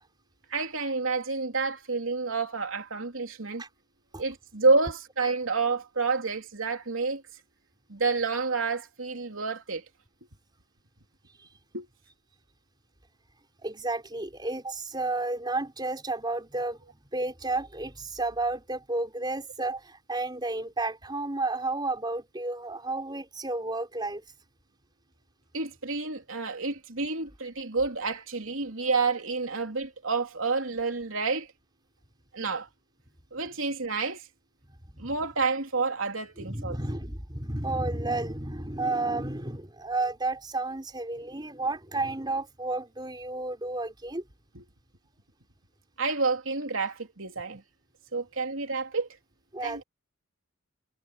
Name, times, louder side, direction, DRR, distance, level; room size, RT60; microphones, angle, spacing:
voice 1, 0.5-3.6 4.2-7.2 7.9-9.8 11.7-11.9 25.5-31.5 32.3-32.7 33.3-34.3 35.0-36.8 44.5-44.6 46.0-47.6 48.1-49.1 49.6-49.8, right 4 dB, 85° right, 3.1 m, -29 dB
voice 2, 13.6-16.8 17.1-24.2 35.0-35.1 36.4-44.2 49.5-49.8, right 2 dB, 20° right, 4.4 m, -32 dB
head